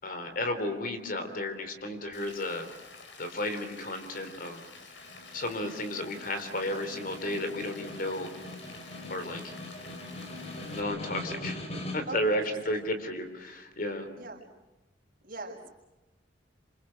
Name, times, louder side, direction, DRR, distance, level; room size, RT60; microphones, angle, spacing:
voice 1, 0.0-2.7 3.2-4.6 5.3-8.3 9.1-9.5 10.6-11.6 11.9-14.1, left 1 dB, 50° left, 8 dB, 3.6 m, -33 dB
Rain, 2.1-10.8, left 4 dB, 85° left, 4.8 m, -50 dB
Snare drum, 4.8-12.3, left 1 dB, 35° left, 4.1 m, -42 dB
voice 2, 12.1-12.9 14.1-14.4 15.2-15.7, right 2 dB, 50° right, -1 dB, 5.8 m, -41 dB
27.5 x 27.0 x 6.6 m, 1.0 s
head